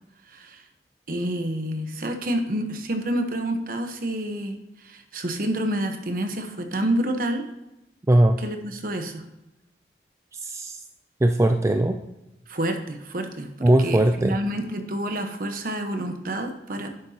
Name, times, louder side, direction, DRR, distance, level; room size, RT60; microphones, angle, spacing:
voice 1, 0.3-0.6 1.1-7.5 8.4-9.2 12.5-16.9, right 1 dB, 50° right, 5 dB, 1.0 m, -28 dB
voice 2, 8.1-8.4 10.3-10.8 11.2-12.0 13.6-14.4, right 1 dB, 15° right, 6 dB, 0.3 m, -19 dB
10.5 x 7.9 x 2.8 m, 0.94 s
head